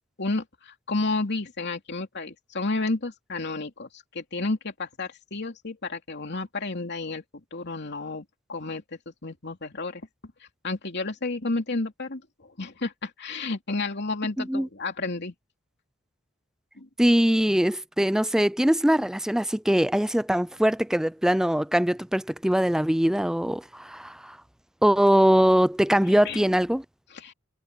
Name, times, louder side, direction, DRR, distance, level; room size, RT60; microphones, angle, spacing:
voice 1, 0.2-8.2 8.5-10.1 10.6-15.3 16.8-16.9 26.2-26.5 27.1-27.3, left 3 dB, 55° left, 3.0 m, -31 dB
voice 2, 14.4-14.7 17.0-24.4 24.8-26.8, equal, 5° right, 0.4 m, -22 dB
head